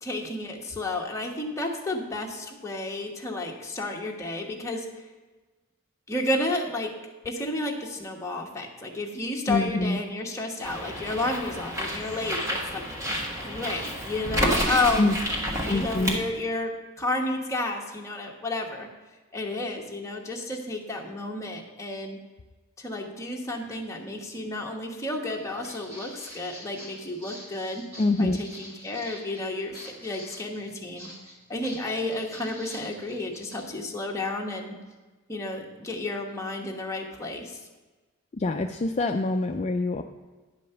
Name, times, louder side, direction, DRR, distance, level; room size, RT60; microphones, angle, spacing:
voice 1, 0.0-4.9 6.1-6.9 7.2-15.1 15.6-18.9 19.3-22.2 22.8-27.9 28.2-31.1 31.5-34.8 35.3-37.5, left 2 dB, 15° left, 0 dB, 1.2 m, -31 dB
voice 2, 9.5-10.0 15.0-15.2 15.7-16.2 28.0-28.4 38.3-40.0, left 2 dB, 30° left, 4 dB, 0.4 m, -25 dB
Bird, 10.6-16.2, equal, 15° right, 1.3 m, -30 dB
Walk footsteps, 25.3-33.6, equal, 45° right, 2.4 m, -46 dB
10.0 x 5.2 x 6.8 m, 1.3 s
head